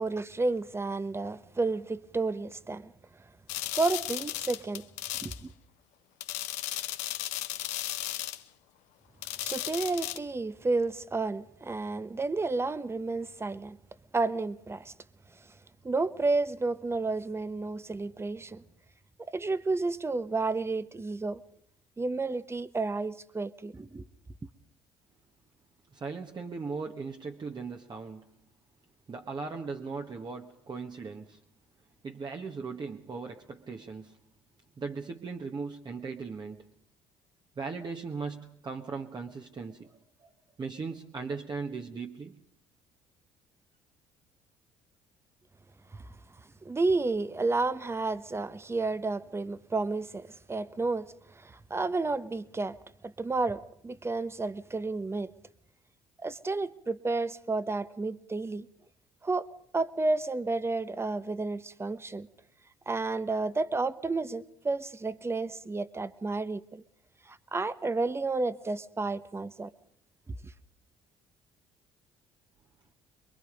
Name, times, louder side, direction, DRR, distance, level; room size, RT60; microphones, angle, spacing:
voice 1, 0.0-2.9 3.7-4.8 5.2-5.5 9.4-13.8 14.1-14.9 15.8-18.6 19.3-21.4 22.0-24.0 45.9-46.0 46.6-52.8 53.0-55.3 56.2-58.7 59.2-59.5 59.7-62.3 62.9-66.8 67.3-69.7, right 3 dB, 20° right, 1.1 m, -31 dB
sound 1, 3.5-5.4 6.2-8.4 9.2-10.2, left 14 dB, 80° left, 1.1 m, -35 dB
voice 2, 25.9-28.3 29.1-31.4 32.0-34.2 34.8-36.7 37.6-40.3 40.6-42.4, right 4 dB, 35° right, 1.6 m, -38 dB
24.5 x 22.5 x 5.2 m
supercardioid pair, 70°, 12 cm